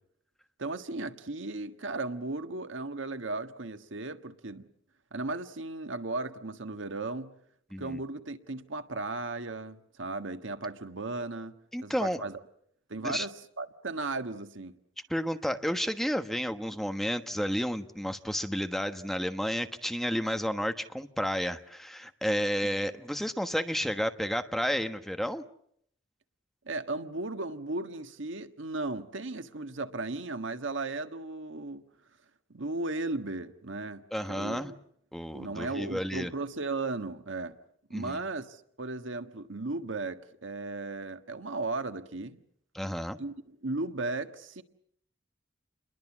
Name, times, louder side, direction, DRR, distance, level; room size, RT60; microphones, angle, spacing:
voice 1, 0.6-4.7 5.1-7.3 7.8-11.5 11.8-12.4 12.9-14.8 26.6-31.8 32.5-34.0 34.3-34.7 35.3-37.6 37.9-42.4 43.2-44.6, right 2 dB, 85° right, 1.6 m, -36 dB
voice 2, 11.7-12.2 13.0-13.3 15.1-25.4 34.1-34.7 35.1-36.3 37.9-38.2 42.7-43.2, equal, ahead, 1.2 m, -31 dB
29.5 x 22.0 x 7.4 m
head